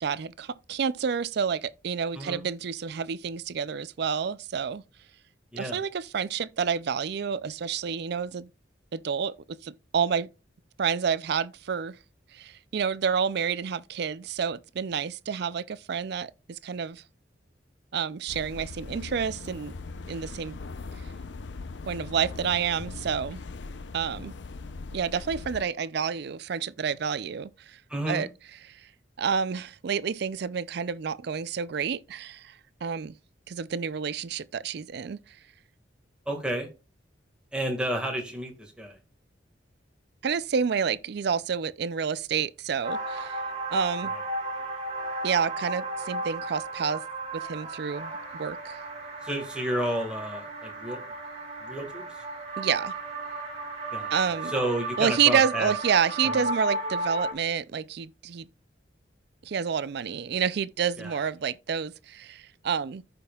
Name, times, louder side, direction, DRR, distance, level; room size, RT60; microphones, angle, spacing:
voice 1, 0.0-4.8 5.6-8.5 8.9-10.3 10.8-12.0 12.3-17.0 17.9-19.7 20.1-20.6 21.9-23.4 23.9-24.3 24.9-27.8 28.1-28.3 28.7-28.8 29.2-33.1 33.5-35.4 40.2-43.4 43.7-44.1 45.2-47.0 47.3-48.8 52.6-52.9 54.1-54.5 55.0-58.5 59.4-63.0, right 7 dB, 60° right, 0.4 m, -29 dB
sound 1, 18.3-25.6, left 3 dB, 70° left, 0.5 m, -40 dB
voice 2, 27.9-28.3 36.3-36.7 37.5-39.0 44.0-44.2 49.2-51.0 51.6-52.2 53.9-54.1 54.5-55.7 56.2-56.4 61.0-61.2, right 1 dB, 5° right, 1.8 m, -31 dB
sound 2, 42.8-57.3, right 2 dB, 35° right, 2.2 m, -34 dB
14.5 x 5.2 x 2.3 m
head